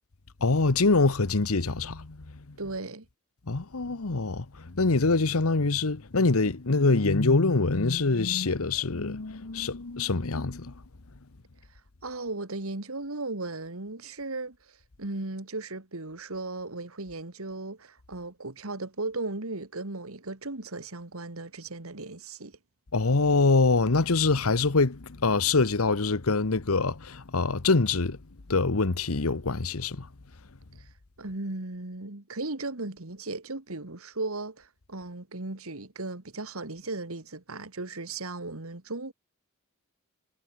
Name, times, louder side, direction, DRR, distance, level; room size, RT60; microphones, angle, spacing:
voice 1, 0.4-2.2 3.5-10.7 22.9-28.2 28.5-30.1, left 3 dB, 80° left, 1.2 m, -24 dB
voice 2, 2.6-3.1 12.0-22.6 30.8-30.9 31.2-39.1, right 2 dB, 80° right, 2.3 m, -36 dB
head